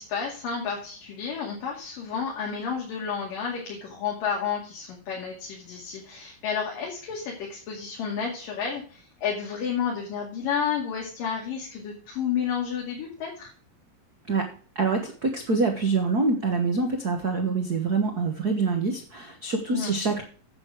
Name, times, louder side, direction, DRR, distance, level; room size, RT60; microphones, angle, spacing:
voice 1, 0.0-13.5 19.7-20.0, left 7 dB, 75° left, -2 dB, 4.1 m, -31 dB
voice 2, 14.3-20.2, right 4 dB, 55° right, 3 dB, 1.0 m, -25 dB
9.6 x 8.0 x 4.9 m, 0.41 s
omnidirectional pair, 3.9 m